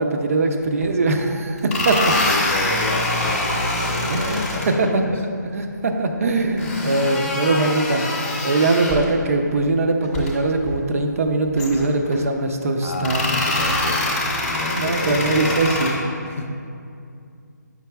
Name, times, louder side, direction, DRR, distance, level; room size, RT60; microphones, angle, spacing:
voice 1, 0.0-2.1 4.1-5.0 5.4-8.1 8.4-13.3 14.7-16.0, right 2 dB, 50° right, 5 dB, 0.5 m, -21 dB
sound 1, 0.8-0.9 1.6-4.7 6.6-9.1 10.0-10.3 10.7-10.8 11.6-12.2 12.9-15.9, left 2 dB, 10° left, 0.7 m, -24 dB
voice 2, 2.0-4.9 12.8-15.6 16.2-16.6, left 2 dB, 40° left, 4 dB, 0.5 m, -30 dB
7.6 x 5.9 x 2.2 m, 2.4 s
figure-of-eight pair, 155°, 10 cm